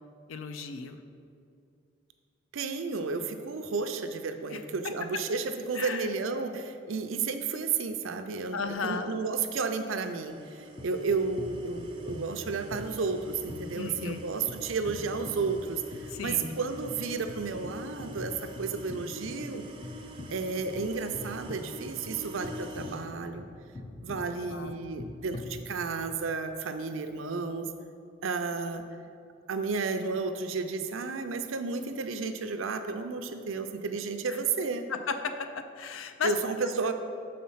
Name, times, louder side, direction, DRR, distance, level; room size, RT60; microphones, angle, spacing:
voice 1, 0.3-1.0 4.5-4.6 5.7-6.1 8.5-9.1 13.7-14.2 16.1-16.6 24.5-24.8 34.3-34.4 34.9-36.3, left 5 dB, 80° left, 8 dB, 0.5 m, -35 dB
voice 2, 2.5-19.6 20.3-23.5 24.0-27.7 28.2-28.8 29.5-34.9 36.2-36.9, right 4 dB, 80° right, 8 dB, 0.5 m, -32 dB
sound 1, 9.2-23.1, equal, 25° right, 0.5 m, -47 dB
sound 2, 10.8-26.1, left 2 dB, 25° left, 0.4 m, -44 dB
6.7 x 4.2 x 5.6 m, 2.4 s
head